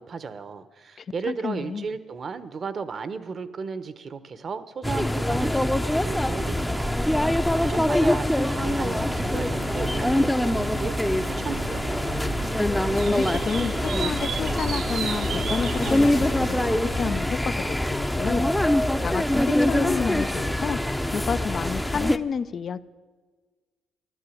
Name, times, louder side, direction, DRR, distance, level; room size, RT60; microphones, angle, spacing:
voice 1, 0.0-7.0 7.6-11.0 11.2-12.1, right 5 dB, 45° right, 13 dB, 1.1 m, -35 dB
voice 2, 1.0-1.9 13.1-16.1 16.5-18.5 19.0-20.8 21.1-22.8, left 6 dB, 50° left, 14 dB, 0.6 m, -30 dB
sound 1, 4.8-22.2, left 1 dB, 5° left, 0.7 m, -24 dB
sound 2, 8.6-17.2, right 7 dB, 70° right, 0.8 m, -35 dB
sound 3, 13.4-18.3, left 5 dB, 90° left, 2.3 m, -40 dB
13.5 x 11.5 x 8.6 m, 1.4 s
supercardioid pair, 65°, 0 cm